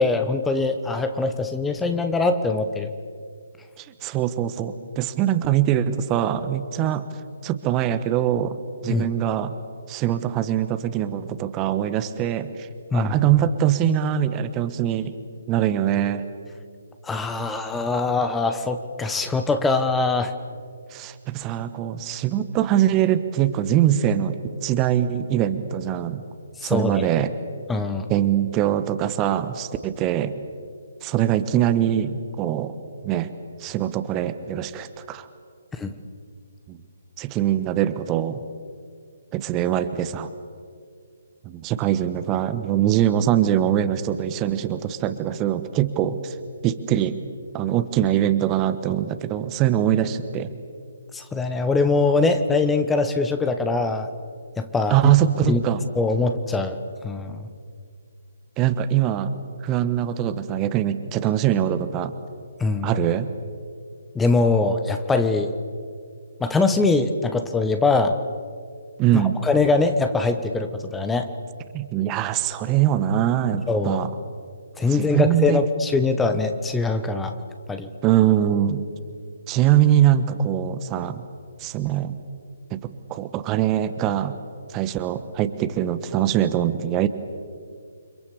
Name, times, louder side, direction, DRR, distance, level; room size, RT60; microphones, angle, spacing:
voice 1, 0.0-2.9 8.9-9.1 12.9-13.1 17.0-20.3 26.6-27.1 27.7-28.1 35.8-35.9 51.1-54.1 54.6-55.1 55.5-55.6 56.0-56.8 57.0-57.5 62.6-62.9 64.1-65.5 66.4-68.1 69.1-71.3 73.7-74.1 74.8-77.3 77.7-77.9, left 3 dB, 5° left, 8 dB, 1.2 m, -22 dB
voice 2, 3.8-7.1 7.4-8.6 8.8-9.5 9.9-12.7 12.9-15.2 15.5-16.2 20.9-26.2 26.6-27.3 28.1-30.3 31.0-32.7 33.0-33.3 33.6-35.3 36.7-36.8 37.2-38.4 39.3-40.3 41.4-46.4 46.6-47.2 47.5-50.5 54.9-55.8 58.6-59.3 59.6-62.1 62.8-63.3 69.0-69.4 71.7-74.1 74.9-75.6 78.0-78.8 79.5-81.2 81.6-82.2 82.7-82.8 83.1-84.3 84.7-87.1, right 11 dB, 20° right, 11 dB, 1.2 m, -22 dB
30.0 x 26.0 x 7.0 m, 2.1 s
figure-of-eight pair, 135°, 0 cm